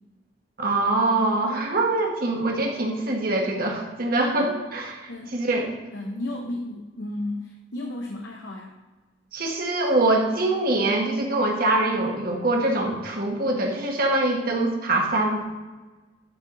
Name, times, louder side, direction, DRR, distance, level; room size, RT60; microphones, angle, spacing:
voice 1, 0.6-5.0 5.3-5.7 9.3-15.4, right 2 dB, 55° right, 0 dB, 1.5 m, -24 dB
voice 2, 5.1-5.7 5.9-8.7, left 1 dB, 90° left, 1 dB, 0.9 m, -34 dB
11.5 x 4.7 x 3.9 m, 1.2 s
head